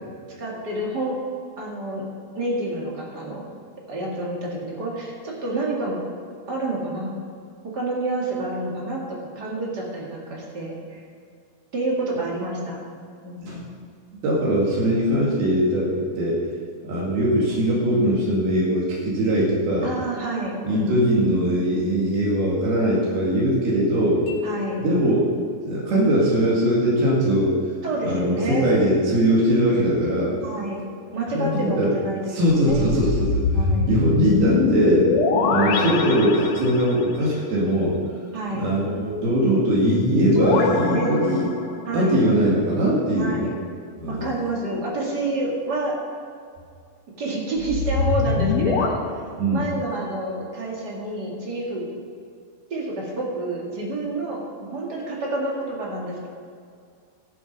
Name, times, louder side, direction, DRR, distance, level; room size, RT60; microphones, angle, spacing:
voice 1, 0.4-1.2 1.6-2.0 2.3-3.4 3.9-6.0 6.5-7.1 7.6-11.0 11.7-12.8 13.2-13.7 19.8-20.9 24.4-24.9 27.8-28.7 30.4-32.9 33.5-34.0 35.3-36.1 38.3-38.7 40.3-41.2 41.9-42.2 43.1-43.5 44.1-45.9 47.2-49.2 49.5-51.9 52.7-56.3, right 2 dB, 35° right, -3 dB, 2.0 m, -28 dB
voice 2, 14.2-16.4 16.8-19.9 20.6-24.2 24.8-25.2 25.6-27.6 28.0-30.3 31.3-31.9 32.3-33.5 33.8-35.1 35.5-38.0 38.5-41.5 41.9-43.5 44.0-44.3 49.4-49.7, right 1 dB, 85° right, -5 dB, 4.1 m, -21 dB
sound 1, 24.3-26.2, left 8 dB, 55° left, 2.8 m, -36 dB
sound 2, 32.6-37.0 39.9-42.0 47.6-48.9, left 4 dB, 85° left, 1.5 m, -23 dB
16.5 x 7.2 x 5.3 m, 2.3 s
omnidirectional pair, 4.3 m